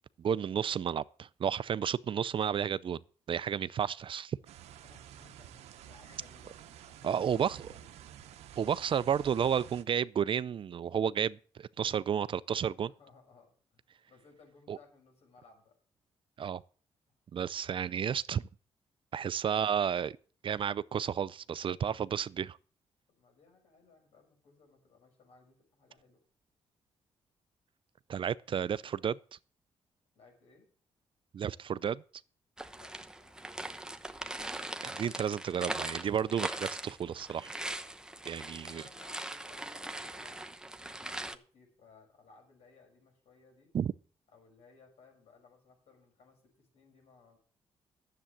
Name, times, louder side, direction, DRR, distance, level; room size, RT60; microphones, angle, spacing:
voice 1, 0.2-3.0 3.3-4.4 7.0-7.6 8.6-12.9 14.7-14.8 16.4-16.6 17.3-18.4 19.1-20.2 20.4-22.6 28.1-29.2 31.3-32.0 34.8-37.5 38.3-38.8 43.7-43.9, right 8 dB, 50° right, 0.5 m, -32 dB
sound 1, 4.5-9.8, right 10 dB, 85° right, 0.8 m, -51 dB
voice 2, 4.8-7.9 12.7-15.8 19.1-19.2 23.1-26.2 30.1-30.7 32.7-33.4 38.3-43.7 44.3-47.4, left 4 dB, 75° left, 6.0 m, -61 dB
sound 2, 32.6-41.4, right 1 dB, 5° right, 0.9 m, -40 dB
10.0 x 7.7 x 7.2 m
cardioid pair, 70°, 11 cm